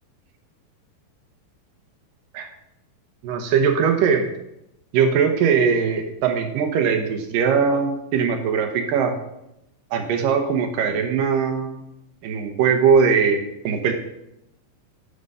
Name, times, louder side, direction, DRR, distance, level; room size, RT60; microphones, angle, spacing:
voice 1, 3.2-4.3 4.9-9.1 9.9-11.9 12.2-13.9, right 6 dB, 70° right, 6 dB, 2.3 m, -20 dB
9.9 x 6.7 x 5.5 m, 0.85 s
omnidirectional pair, 4.7 m